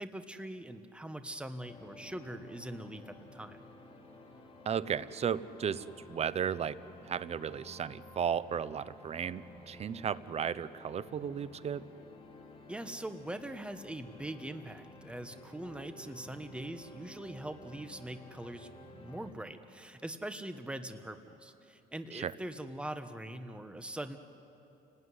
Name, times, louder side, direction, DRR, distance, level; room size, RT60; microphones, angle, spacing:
voice 1, 0.0-3.6 12.7-18.7 19.0-24.2, right 1 dB, 5° right, 9 dB, 1.3 m, -42 dB
sound 1, 1.7-19.3, left 1 dB, 35° left, 3.3 m, -53 dB
voice 2, 4.6-11.8 22.1-22.3, right 8 dB, 40° right, 17 dB, 0.8 m, -35 dB
29.5 x 19.0 x 9.8 m, 2.9 s
cardioid pair, 110°, 17 cm